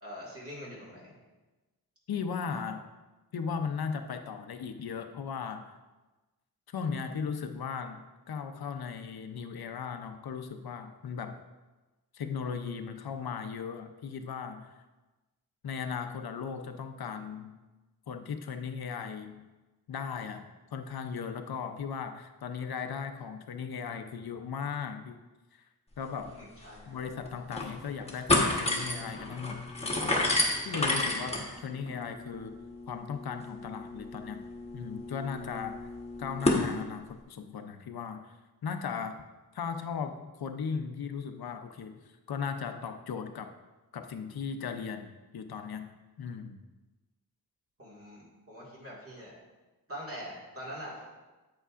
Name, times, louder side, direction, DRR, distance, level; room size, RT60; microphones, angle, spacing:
voice 1, 0.0-1.2 26.3-27.0 47.8-49.4 49.9-51.0, equal, 35° right, -6 dB, 2.0 m, -44 dB
voice 2, 2.1-2.9 3.3-5.8 6.7-11.4 12.1-14.7 15.6-17.6 18.1-19.5 19.9-25.2 25.5-25.6 26.0-26.4 26.9-30.2 30.6-32.6 32.9-34.4 34.7-35.9 36.2-38.3 38.6-39.3 39.5-42.0 42.3-43.5 43.9-45.9 46.2-46.6, left 6 dB, 75° left, 6 dB, 0.7 m, -37 dB
sound 1, 26.3-26.4 26.6-26.7 27.2-27.7 28.0-36.6, left 2 dB, 15° left, 1.1 m, -31 dB
8.7 x 8.2 x 2.5 m, 1.1 s
wide cardioid pair, 155°, 38 cm